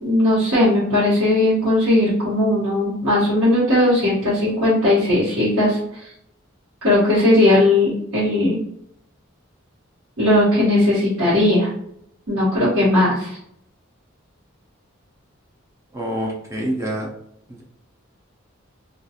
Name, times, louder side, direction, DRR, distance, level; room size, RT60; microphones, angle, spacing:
voice 1, 0.0-5.8 6.8-8.6 10.2-11.7 12.3-13.4, left 1 dB, 75° right, -11 dB, 1.0 m, -17 dB
voice 2, 15.9-17.1 17.5-17.6, equal, 15° right, -2 dB, 0.4 m, -26 dB
2.3 x 2.3 x 2.7 m, 0.72 s
head